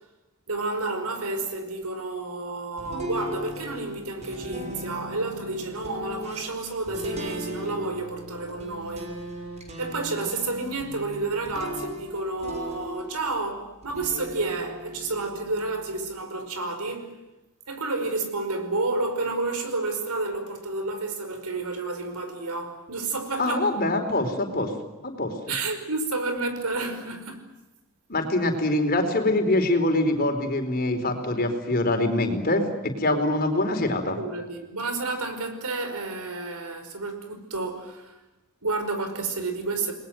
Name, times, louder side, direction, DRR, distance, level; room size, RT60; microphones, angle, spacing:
voice 1, 0.5-9.2 9.8-17.1 17.7-23.7 25.5-27.4 34.1-38.1 38.6-39.9, right 3 dB, 90° right, 8 dB, 5.3 m, -30 dB
sound 1, 2.8-13.4 13.8-16.2, equal, 30° right, 6.2 m, -38 dB
voice 2, 23.4-24.7 25.0-25.3 28.1-34.2, left 2 dB, 40° left, 5 dB, 4.4 m, -24 dB
29.5 x 21.0 x 7.8 m, 1.0 s
head